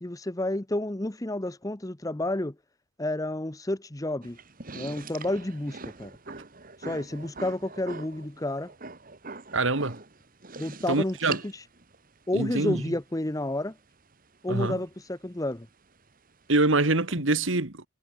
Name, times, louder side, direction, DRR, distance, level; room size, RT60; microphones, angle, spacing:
voice 1, 0.0-2.6 3.0-4.4 4.7-6.1 6.8-8.7 10.6-11.5 12.3-13.8 14.4-15.7, left 1 dB, 15° left, 0.8 m, -30 dB
sound 1, 4.2-17.1, right 4 dB, 40° right, 2.0 m, -44 dB
voice 2, 9.5-10.0 10.9-11.4 12.3-12.9 14.5-14.8 16.5-17.8, right 2 dB, 60° right, 1.8 m, -25 dB
head